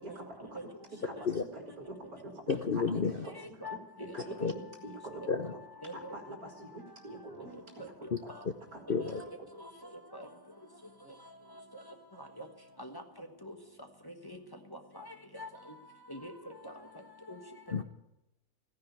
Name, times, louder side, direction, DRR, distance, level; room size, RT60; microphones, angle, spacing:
voice 1, 0.0-0.6 1.0-2.5 2.9-3.8 4.1-4.5 4.8-5.2 5.5-5.6 5.9-7.9 8.7-8.8 9.2-9.5, right 2 dB, 50° right, 2.3 m, -46 dB
voice 2, 2.5-3.1 4.4-4.5 5.3-5.4 8.1-8.2 8.9-9.2 17.7-17.8, left 5 dB, 60° left, 0.5 m, -30 dB
voice 3, 5.8-6.1 8.0-8.4 9.0-9.1 9.6-9.7 10.1-10.3 11.7-11.8 12.2-12.5 12.8-12.9 13.2-13.5 14.2-14.4 14.9-15.1 15.3-15.8 16.1-16.7 17.3-17.4, left 1 dB, 15° left, 1.2 m, -44 dB
15.5 x 10.5 x 8.2 m
omnidirectional pair, 2.0 m